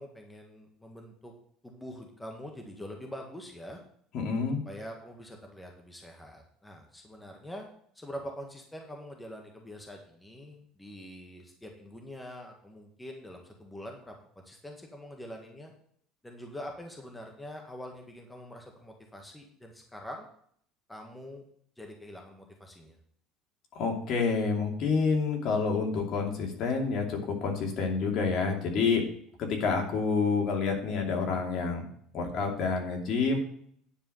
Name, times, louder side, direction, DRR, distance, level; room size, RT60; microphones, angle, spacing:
voice 1, 0.0-1.3 1.6-3.8 4.6-7.7 7.9-14.1 14.4-15.7 16.2-20.2 20.9-21.4 21.8-23.0, equal, 5° left, 2 dB, 1.6 m, -44 dB
voice 2, 4.1-4.6 23.7-29.1 29.4-31.9 32.1-33.4, left 4 dB, 50° left, 2 dB, 2.6 m, -28 dB
10.0 x 4.9 x 7.8 m, 0.62 s
cardioid pair, 130°, 0 cm